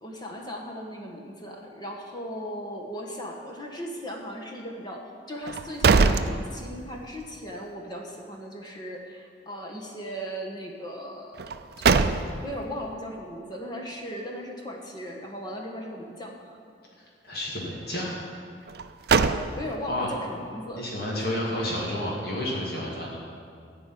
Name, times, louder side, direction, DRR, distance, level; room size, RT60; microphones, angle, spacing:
voice 1, 0.0-12.1 12.4-16.5 19.1-20.8 21.3-21.4, equal, 25° left, -1 dB, 1.5 m, -37 dB
sound 1, 5.4-7.1 7.5-7.6 11.4-12.6 18.7-19.9, right 4 dB, 60° right, 0.4 m, -23 dB
voice 2, 17.0-18.1 19.9-20.1 20.8-23.2, left 1 dB, 60° left, -4 dB, 2.2 m, -31 dB
14.0 x 5.2 x 9.3 m, 2.2 s
head